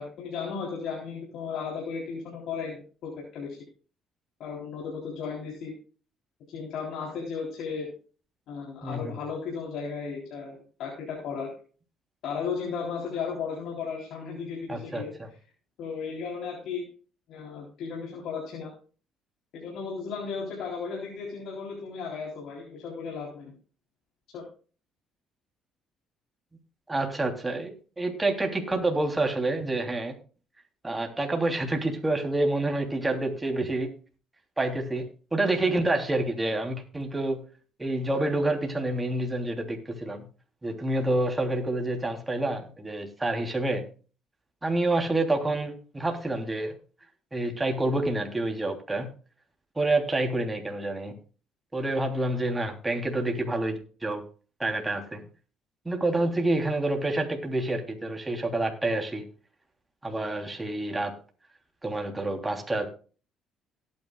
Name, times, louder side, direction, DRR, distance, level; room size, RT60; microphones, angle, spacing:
voice 1, 0.0-3.6 4.4-5.7 6.5-7.9 8.5-11.5 12.2-15.1 15.8-16.9 17.3-18.7 19.5-23.5 24.3-24.4, left 5 dB, 75° left, -2 dB, 3.7 m, -35 dB
voice 2, 8.8-9.2 14.7-15.3 26.9-30.1 30.8-33.9 34.6-37.4 37.8-40.3 40.6-43.9 44.6-46.8 47.3-49.1 49.7-51.1 51.7-54.2 54.6-55.2 55.8-59.3 60.0-61.1 61.8-62.9, right 2 dB, 15° right, 3 dB, 3.2 m, -28 dB
17.5 x 9.6 x 2.4 m, 0.37 s
supercardioid pair, 75°, 0 cm